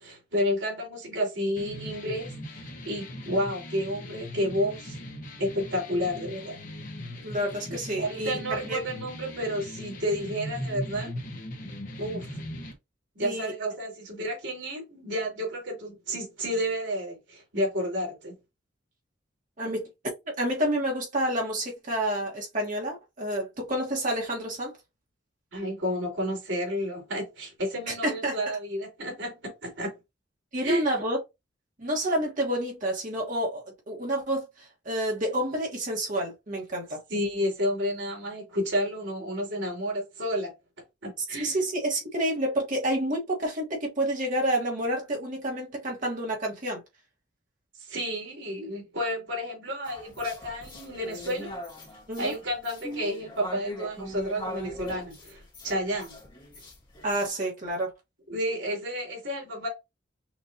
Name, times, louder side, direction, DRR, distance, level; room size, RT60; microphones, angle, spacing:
voice 1, 0.0-5.0 5.4-6.6 8.0-11.1 12.0-12.4 13.1-18.4 25.5-30.0 30.6-30.9 37.1-40.5 41.0-41.6 47.8-51.5 52.2-56.2 58.3-59.7, equal, 75° right, 2.9 m, -31 dB
sound 1, 1.6-12.7, equal, 45° left, 1.2 m, -39 dB
voice 2, 7.2-8.8 13.2-13.5 19.6-19.9 20.4-24.8 28.0-28.3 30.5-31.2 31.8-37.0 41.4-46.8 52.1-52.3 57.0-57.9, right 1 dB, 45° right, 1.4 m, -29 dB
sound 2, 49.9-57.3, equal, 25° left, 1.7 m, -41 dB
6.1 x 2.6 x 2.8 m
head